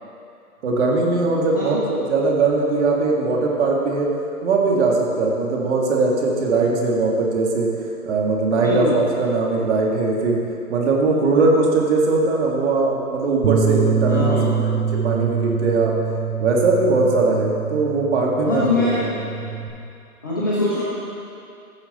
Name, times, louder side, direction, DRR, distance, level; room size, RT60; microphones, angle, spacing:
voice 1, 0.6-4.1 4.4-7.7 8.1-10.4 10.7-14.4 14.6-15.9 16.4-18.9, right 3 dB, 45° right, -1 dB, 1.9 m, -20 dB
voice 2, 8.6-9.0 14.1-14.5 18.5-19.2 20.2-20.8, left 2 dB, 15° left, -8 dB, 0.5 m, -22 dB
Bass guitar, 13.4-19.7, right 6 dB, 85° right, 1.7 m, -24 dB
15.0 x 5.7 x 4.1 m, 2.6 s
hypercardioid pair, 140°, 46 cm